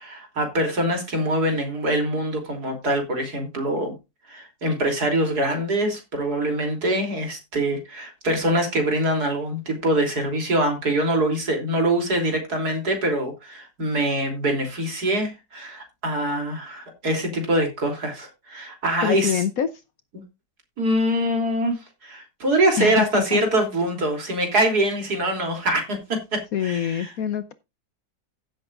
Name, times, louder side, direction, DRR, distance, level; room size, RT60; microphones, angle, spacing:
voice 1, 0.0-3.9 4.3-19.4 20.8-27.1, right 1 dB, 60° right, 3.7 m, -24 dB
voice 2, 19.0-19.7 22.8-23.4 26.5-27.5, left 9 dB, 60° left, 1.1 m, -25 dB
16.0 x 7.9 x 2.5 m
omnidirectional pair, 1.9 m